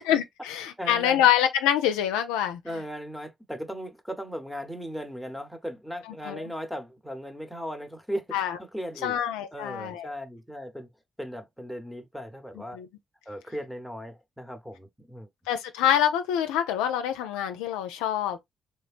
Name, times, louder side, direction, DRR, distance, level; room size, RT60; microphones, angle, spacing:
voice 1, 0.0-2.6 6.2-6.5 8.3-8.6 9.0-10.1 12.7-12.9 15.5-18.4, left 10 dB, 90° left, 0.4 m, -25 dB
voice 2, 0.8-1.2 2.6-9.2 9.5-10.9 11.2-12.8 13.3-15.3, equal, ahead, 0.9 m, -37 dB
3.3 x 3.1 x 2.4 m
hypercardioid pair, 45°, 0 cm